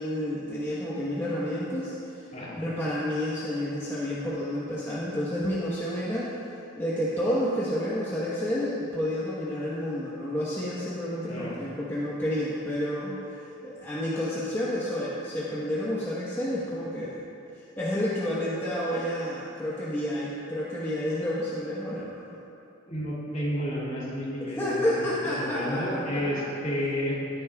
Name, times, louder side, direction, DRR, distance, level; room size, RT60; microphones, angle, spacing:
voice 1, 0.0-2.3 2.6-6.4 6.8-17.2 17.8-22.2 24.4-26.4, equal, 15° left, -8 dB, 1.2 m, -30 dB
voice 2, 22.9-27.2, equal, 40° left, -6 dB, 2.6 m, -31 dB
17.0 x 9.4 x 2.4 m, 2.8 s
head